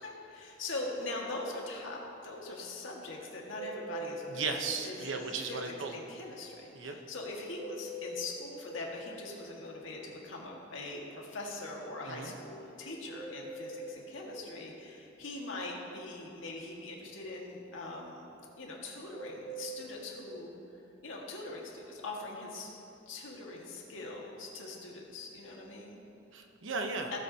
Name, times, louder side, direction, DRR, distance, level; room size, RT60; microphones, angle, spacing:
voice 1, 0.0-5.1 5.5-18.2 18.6-20.6 21.0-22.7 23.0-26.0, left 2 dB, 80° left, -2 dB, 1.8 m, -42 dB
sound 1, 3.5-4.9 7.5-8.9 13.1-14.5 19.1-20.5, right 2 dB, 20° right, 0.8 m, -43 dB
voice 2, 4.3-6.0 6.7-7.0 12.0-12.3 26.3-27.1, right 4 dB, 75° right, 4 dB, 1.0 m, -36 dB
17.5 x 7.9 x 2.8 m, 3.0 s
head